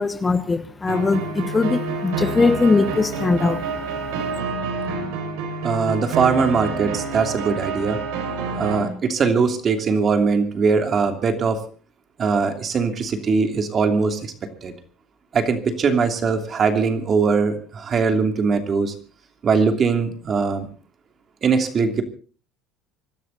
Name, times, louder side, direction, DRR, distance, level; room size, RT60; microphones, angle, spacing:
voice 1, 0.0-3.7, left 3 dB, 15° left, 1.1 m, -20 dB
sound 1, 0.9-8.9, right 3 dB, 80° right, 5.9 m, -28 dB
voice 2, 5.6-8.0 8.6-11.6 12.2-14.3 14.6-14.7 15.3-18.9 19.4-20.7 21.4-22.0, right 5 dB, 30° right, 2.9 m, -21 dB
25.0 x 12.5 x 4.1 m
cardioid pair, 135°, 0 cm